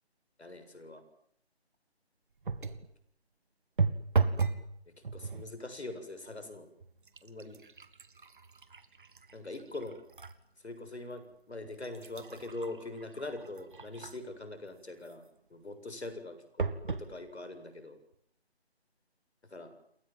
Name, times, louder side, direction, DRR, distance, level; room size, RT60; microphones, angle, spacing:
voice 1, 0.4-1.0 2.6-2.8 5.1-6.7 7.2-7.6 9.3-10.0 10.6-18.0 19.4-19.7, left 2 dB, 80° left, 9 dB, 7.6 m, -43 dB
sound 1, 2.4-2.9 3.8-4.7 5.0-5.5 6.3-6.4 6.8-10.4 10.9-11.0 11.6-14.4 16.6-17.1 17.8-17.9 18.1-18.2, right 4 dB, 50° right, 2.2 m, -35 dB
29.0 x 24.0 x 7.7 m, 0.69 s
figure-of-eight pair, 165°, 33 cm